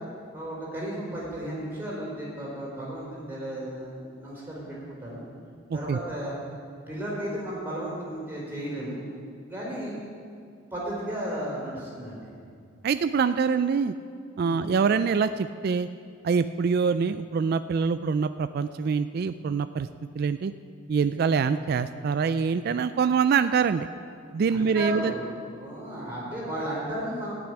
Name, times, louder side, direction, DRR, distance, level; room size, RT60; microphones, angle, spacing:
voice 1, 0.3-5.3 5.7-6.4 6.9-9.0 9.5-10.0 10.7-12.3 14.4-14.6 24.5-25.3 25.6-27.3, right 1 dB, 10° right, -5 dB, 4.3 m, -34 dB
voice 2, 12.8-13.9 14.4-15.9 16.2-19.9 20.2-20.5 20.9-23.9 24.3-25.1, right 5 dB, 50° right, 11 dB, 0.3 m, -24 dB
15.0 x 6.1 x 10.0 m, 2.3 s
head